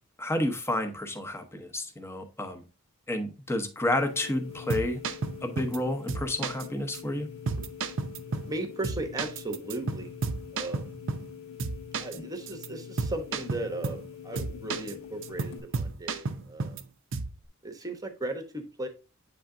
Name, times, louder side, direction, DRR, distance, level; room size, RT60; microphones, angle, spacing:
voice 1, 0.2-2.6 3.1-5.0 5.4-7.3, left 1 dB, 10° left, 5 dB, 0.8 m, -30 dB
sound 1, 3.9-15.6, left 7 dB, 65° left, 1.5 m, -44 dB
sound 2, 4.5-5.8 6.1-6.7 6.9-7.0 7.5-8.6 8.8-11.3 11.6-12.2 12.5-12.7 13.0-14.1 14.4-14.9 15.2-16.8 17.1-17.4, right 4 dB, 55° right, 0.6 m, -33 dB
voice 2, 8.3-10.2 10.5-10.9 12.0-16.8 17.6-18.9, right 2 dB, 15° right, 5 dB, 1.0 m, -36 dB
8.5 x 3.5 x 3.7 m, 0.32 s
head